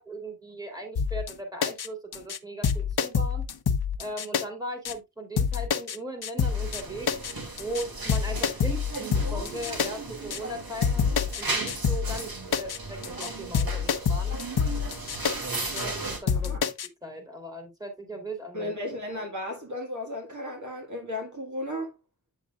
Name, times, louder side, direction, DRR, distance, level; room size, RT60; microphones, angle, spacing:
voice 1, 0.0-3.5 4.0-7.1 7.6-11.0 11.4-12.3 12.6-14.3 15.6-16.5 17.0-18.7, right 1 dB, 10° right, 3.0 m, -38 dB
sound 1, 1.0-1.3 1.6-1.9 2.1-2.4 2.6-4.4 4.8-4.9 5.4-6.0 6.2-6.8 7.1-7.3 7.6-7.8 8.1-9.9 10.3-10.4 10.8-11.4 11.7-12.2 12.5-12.8 13.0-13.3 13.5-15.3 15.8-15.9 16.3-16.9, left 6 dB, 80° left, 0.7 m, -26 dB
Aldi Supermarket Ambience Berlin Germany, 6.4-16.2, right 2 dB, 70° right, 2.3 m, -36 dB
voice 2, 18.5-21.9, left 1 dB, 50° right, 1.8 m, -34 dB
8.6 x 7.2 x 2.4 m
wide cardioid pair, 100°, 37 cm